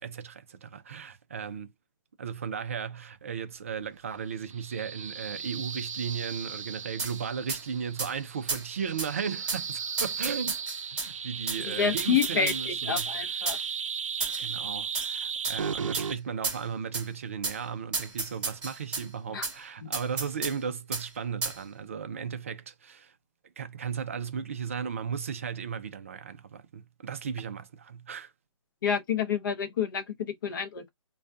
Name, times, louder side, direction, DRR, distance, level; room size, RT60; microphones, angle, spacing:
voice 1, 0.0-1.7 2.2-10.6 10.9-13.4 14.4-23.1 23.6-28.3, right 7 dB, 25° right, 0.4 m, -36 dB
sound 1, 4.4-16.2, right 6 dB, 80° right, 0.5 m, -36 dB
sound 2, 7.0-7.1 7.5-7.6 8.0-8.1 8.5-8.6 9.0-9.1 9.5-9.6 10.0-11.1 11.5-11.6 12.0-12.6 13.0-13.1 13.5-13.6 14.2-14.5 14.9-15.1 15.4-15.6 15.9-16.1 16.4-16.6 16.9-17.1 17.4-17.6 17.9-19.0 19.4-19.5 19.9-20.5 20.9-21.0 21.4-21.6, right 4 dB, 5° right, 0.8 m, -32 dB
voice 2, 11.7-13.6 19.3-19.5 19.8-19.9 28.8-30.9, left 7 dB, 40° left, 0.7 m, -29 dB
2.3 x 2.2 x 2.5 m
hypercardioid pair, 165°, 17 cm